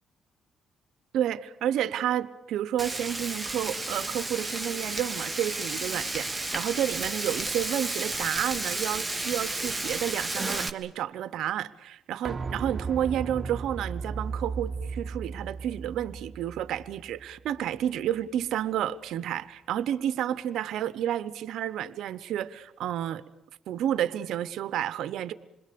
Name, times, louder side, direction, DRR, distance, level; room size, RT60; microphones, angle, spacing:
voice 1, 1.1-23.2 23.7-25.3, right 11 dB, 80° right, 14 dB, 0.9 m, -30 dB
Frying (food), 2.8-10.7, right 2 dB, 10° right, 1.4 m, -32 dB
sound 1, 12.2-17.9 18.2-18.3, right 4 dB, 35° right, 1.6 m, -36 dB
27.5 x 21.5 x 6.9 m, 0.94 s
cardioid pair, 90°, 0 cm